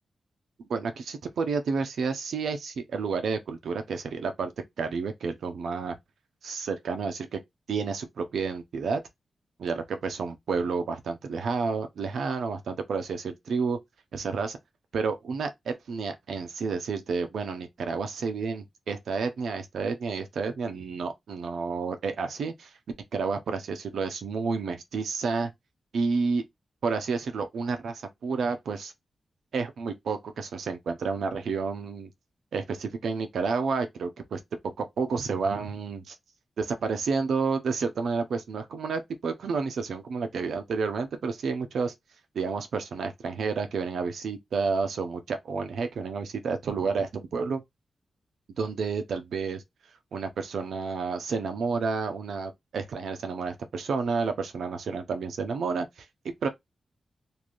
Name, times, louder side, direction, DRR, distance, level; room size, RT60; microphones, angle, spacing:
voice 1, 0.7-4.5 4.8-6.0 6.4-7.4 7.7-9.0 9.6-13.8 14.1-14.6 14.9-22.7 23.1-25.5 25.9-26.4 26.8-28.9 29.5-32.1 32.5-34.4 34.8-36.1 36.6-41.9 42.3-47.6 48.6-49.6 50.1-55.9 56.2-56.5, right 4 dB, 90° right, 0.8 m, -30 dB
3.2 x 2.7 x 2.5 m
wide cardioid pair, 125°, 0 cm